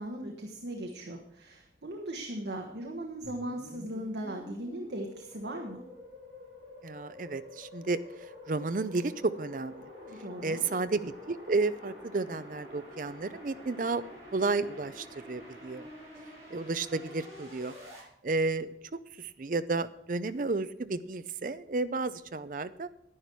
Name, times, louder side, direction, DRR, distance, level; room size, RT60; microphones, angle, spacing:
voice 1, 0.0-5.8 10.0-10.6, right 1 dB, 75° right, 1 dB, 1.3 m, -38 dB
sound 1, 3.2-18.0, left 1 dB, 20° right, 4.9 m, -48 dB
voice 2, 6.8-9.8 10.4-14.0 14.3-15.9 16.5-17.7 18.2-18.8 19.1-22.9, right 3 dB, 45° right, 13 dB, 0.5 m, -32 dB
11.0 x 10.0 x 4.6 m, 0.75 s
head